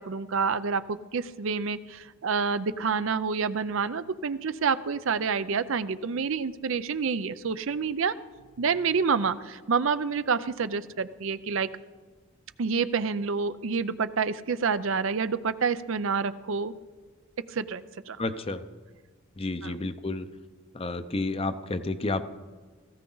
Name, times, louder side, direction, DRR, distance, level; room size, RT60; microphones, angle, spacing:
voice 1, 0.0-8.1 8.6-11.7 12.6-16.7 17.5-18.2 19.6-19.8, right 5 dB, 65° right, 14 dB, 0.5 m, -28 dB
voice 2, 18.2-18.6 19.4-20.3 20.7-22.2, left 2 dB, 25° left, 10 dB, 0.6 m, -30 dB
17.5 x 15.5 x 3.9 m, 1.4 s
head